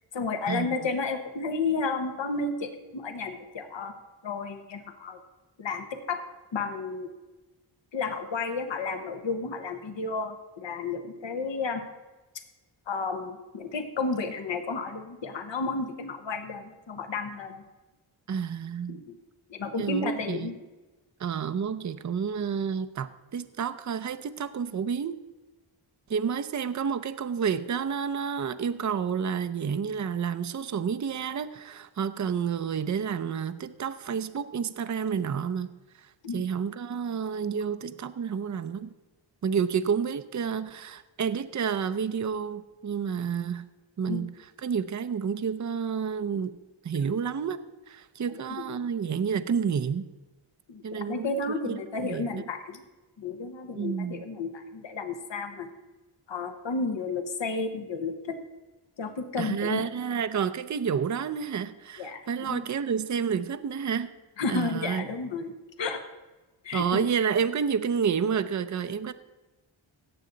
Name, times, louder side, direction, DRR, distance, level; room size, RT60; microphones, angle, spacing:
voice 1, 0.1-3.9 4.2-5.2 5.6-6.2 6.5-7.1 7.9-11.8 12.9-17.6 18.9-19.2 19.5-20.5 36.2-36.4 44.1-44.3 47.1-47.2 48.3-48.8 50.7-52.8 53.2-55.7 56.3-58.4 59.0-59.8 62.0-62.6 64.4-65.5 65.8-66.0 66.6-67.1, left 4 dB, 65° left, 7 dB, 1.3 m, -32 dB
voice 2, 18.3-19.0 19.8-20.5 21.2-25.2 26.1-35.7 36.3-38.9 39.4-43.6 44.0-44.3 44.6-46.6 46.8-47.6 47.9-50.1 50.8-51.3 51.6-52.4 53.8-54.2 59.4-64.1 64.5-65.1 66.7-69.1, right 7 dB, 35° right, 12 dB, 0.6 m, -30 dB
17.0 x 7.0 x 4.0 m, 1.2 s
cardioid pair, 60°, 48 cm